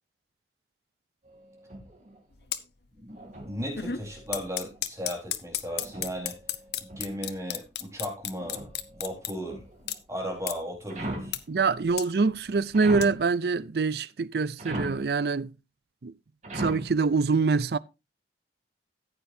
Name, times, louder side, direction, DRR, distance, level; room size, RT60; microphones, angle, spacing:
sound 1, 1.2-2.2 3.1-4.8 5.7-7.4 8.3-10.0 10.9-11.5 12.7-13.3 14.6-15.1 16.4-17.0, right 1 dB, 45° right, 3.0 m, -39 dB
sound 2, 2.3-2.6 3.0-3.3 3.6-9.3 9.8-10.0 10.4-10.5 11.1-11.4 11.6-13.1, left 10 dB, 65° left, 0.8 m, -33 dB
voice 1, 2.9-6.4 6.8-9.6 10.1-11.4, equal, 15° right, 4.2 m, -36 dB
voice 2, 11.5-15.5 16.0-16.1 16.5-17.8, right 4 dB, 60° right, 0.5 m, -25 dB
14.5 x 8.8 x 2.7 m
head